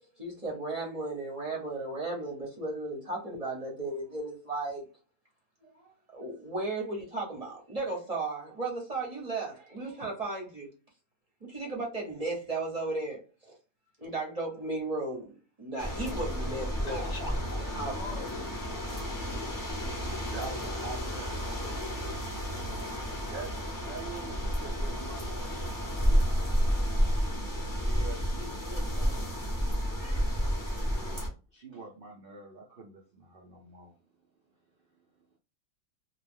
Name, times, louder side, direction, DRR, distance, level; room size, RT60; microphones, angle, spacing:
voice 1, 0.2-4.9 6.1-10.7 11.4-13.5 14.0-17.1 17.7-17.9 28.4-29.2 29.9-30.2, right 2 dB, 30° right, 0.7 m, -35 dB
sound 1, 15.8-31.3, equal, 25° left, 0.4 m, -31 dB
voice 2, 16.6-18.7, left 2 dB, 60° left, 0.8 m, -42 dB
voice 3, 19.9-21.5 23.3-23.5 23.8-26.3 27.8-28.5 30.9-33.9, right 4 dB, 70° right, 0.5 m, -45 dB
2.4 x 2.2 x 3.4 m
omnidirectional pair, 1.6 m